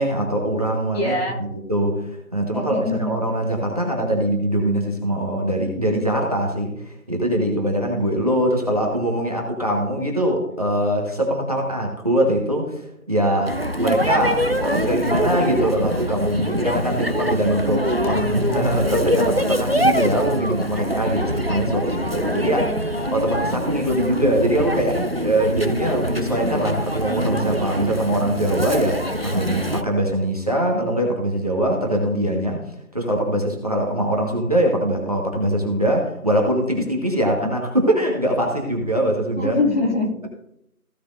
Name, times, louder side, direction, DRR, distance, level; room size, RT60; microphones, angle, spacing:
voice 1, 0.0-22.6 23.1-32.6 32.9-39.6, right 1 dB, 25° right, 0 dB, 1.4 m, -22 dB
voice 2, 0.9-1.4 2.5-3.2 22.2-23.4 37.4-37.5 39.4-40.3, left 2 dB, 45° left, -1 dB, 2.6 m, -25 dB
sound 1, 13.5-29.8, equal, 45° right, 0.5 m, -24 dB
15.5 x 6.6 x 2.6 m, 0.77 s
figure-of-eight pair, 170°, 43 cm